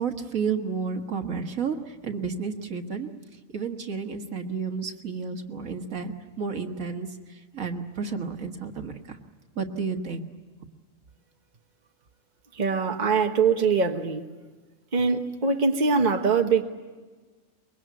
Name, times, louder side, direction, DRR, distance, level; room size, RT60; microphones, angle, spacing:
voice 1, 0.0-3.1 3.5-9.2 9.6-10.3, right 5 dB, 80° right, 4 dB, 2.0 m, -31 dB
voice 2, 12.5-14.2 14.9-16.6, right 5 dB, 35° right, 4 dB, 1.4 m, -23 dB
24.0 x 22.5 x 9.4 m, 1.3 s
omnidirectional pair, 1.4 m